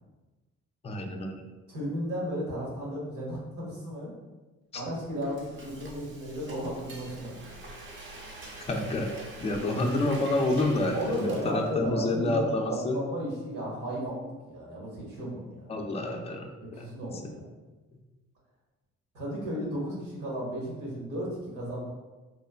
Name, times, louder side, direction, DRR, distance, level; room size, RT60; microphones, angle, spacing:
voice 1, 0.8-1.5 8.7-9.1 9.4-13.0 15.7-16.5 16.8-16.9, left 2 dB, 20° left, 3 dB, 0.3 m, -28 dB
voice 2, 1.7-4.1 4.7-7.4 10.9-15.9 16.7-17.5 19.1-21.9, equal, 80° right, -4 dB, 1.1 m, -34 dB
Frying (food), 4.9-11.9, right 2 dB, 40° right, 0.5 m, -45 dB
3.0 x 2.1 x 2.3 m, 1.2 s
cardioid pair, 90°, 30 cm